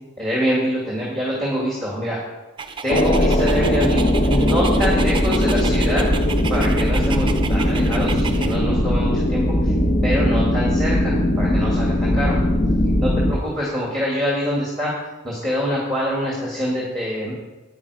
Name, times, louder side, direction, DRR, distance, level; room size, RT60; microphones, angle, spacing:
voice 1, 0.2-2.2 2.8-6.1 6.5-9.7 10.0-12.4 13.0-14.9 15.2-17.3, equal, ahead, -5 dB, 2.2 m, -25 dB
Dog, 2.6-8.6, right 5 dB, 25° right, 0.7 m, -32 dB
sound 1, 2.9-13.3, left 1 dB, 30° left, 1.0 m, -19 dB
9.6 x 9.5 x 4.9 m, 1.1 s
head